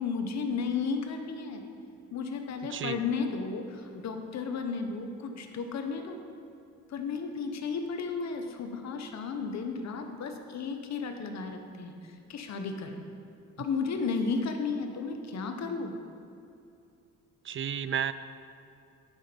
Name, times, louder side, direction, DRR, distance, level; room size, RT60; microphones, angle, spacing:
voice 1, 0.0-1.6 2.1-6.2 6.9-13.0 13.6-16.0, left 5 dB, 60° left, 5 dB, 1.1 m, -33 dB
voice 2, 17.4-18.1, right 8 dB, 45° right, 13 dB, 0.4 m, -31 dB
11.0 x 6.0 x 5.3 m, 2.6 s
cardioid pair, 90°, 30 cm